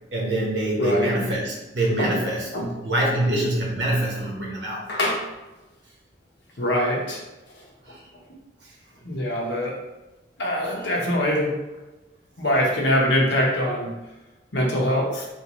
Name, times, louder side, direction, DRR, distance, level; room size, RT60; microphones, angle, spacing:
voice 1, 0.1-4.8 7.9-8.0, right 1 dB, 80° right, -4 dB, 1.1 m, -25 dB
voice 2, 4.9-5.2 6.6-7.2 9.0-9.8 10.4-11.5 12.4-13.9 14.5-15.3, equal, 80° left, -2 dB, 0.9 m, -23 dB
3.4 x 2.7 x 3.0 m, 1.0 s
head